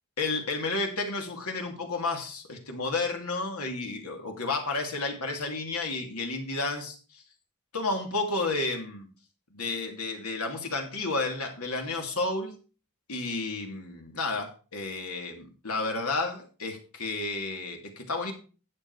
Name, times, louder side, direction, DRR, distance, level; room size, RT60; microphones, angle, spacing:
voice 1, 0.2-7.2 7.7-9.1 9.5-12.5 13.1-18.3, left 3 dB, 85° left, 3 dB, 2.6 m, -31 dB
11.0 x 7.7 x 4.6 m, 0.36 s
head